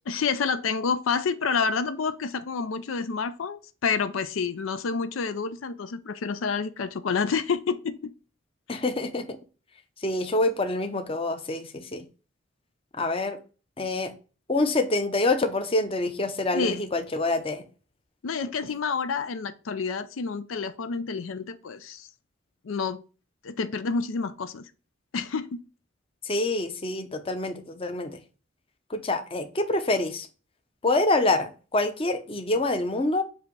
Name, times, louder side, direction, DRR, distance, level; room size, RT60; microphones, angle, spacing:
voice 1, 0.1-8.1 8.7-8.8 16.5-16.8 18.2-22.1 22.6-23.0 23.4-24.7 25.1-25.6, left 5 dB, 85° left, 0.5 m, -29 dB
voice 2, 8.7-9.3 10.0-12.1 13.0-13.4 13.8-14.1 14.5-17.6 26.2-28.2 28.9-30.3 30.8-33.2, left 2 dB, 30° left, 0.7 m, -26 dB
7.4 x 2.8 x 4.6 m
head